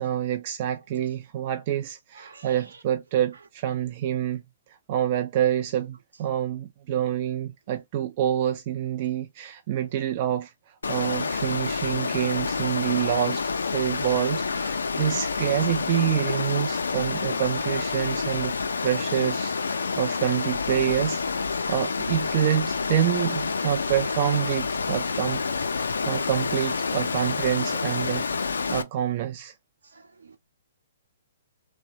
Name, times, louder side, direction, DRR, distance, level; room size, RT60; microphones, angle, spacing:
voice 1, 0.0-4.4 4.9-10.5 10.9-18.5 18.8-21.2 21.7-25.4 25.8-28.3 28.7-29.5, right 11 dB, 40° right, 0.3 m, -27 dB
voice 2, 2.1-2.6 19.8-19.9 26.2-26.3 29.9-30.4, right 4 dB, 80° right, 0.8 m, -49 dB
Water, 10.8-28.8, left 4 dB, 75° left, 0.4 m, -28 dB
3.0 x 2.1 x 2.7 m
figure-of-eight pair, 125°, 0 cm